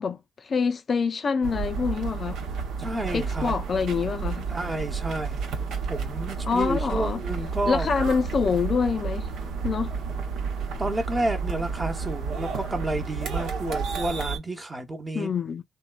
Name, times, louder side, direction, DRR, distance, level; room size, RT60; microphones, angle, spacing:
voice 1, 0.0-2.4 3.1-4.5 6.5-7.2 7.7-9.3 9.6-9.9 15.1-15.6, left 5 dB, 45° left, 0.4 m, -26 dB
sound 1, 1.4-14.4, right 5 dB, 80° right, 1.0 m, -31 dB
voice 2, 2.8-3.5 4.5-5.4 5.9-7.9 10.8-15.3, right 1 dB, 20° right, 0.9 m, -30 dB
3.5 x 2.2 x 2.3 m
cardioid pair, 90°, 0 cm